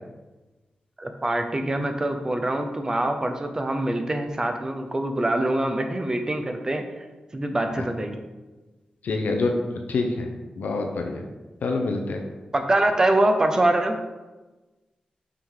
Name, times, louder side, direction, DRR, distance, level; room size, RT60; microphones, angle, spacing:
voice 1, 1.0-6.8 7.3-8.2 12.5-14.0, right 1 dB, 25° right, 5 dB, 0.6 m, -24 dB
voice 2, 9.0-9.5 9.9-10.3 10.6-11.2 11.6-12.2, left 3 dB, 90° left, 3 dB, 0.7 m, -26 dB
5.7 x 4.8 x 3.8 m, 1.2 s
wide cardioid pair, 110°, 3 cm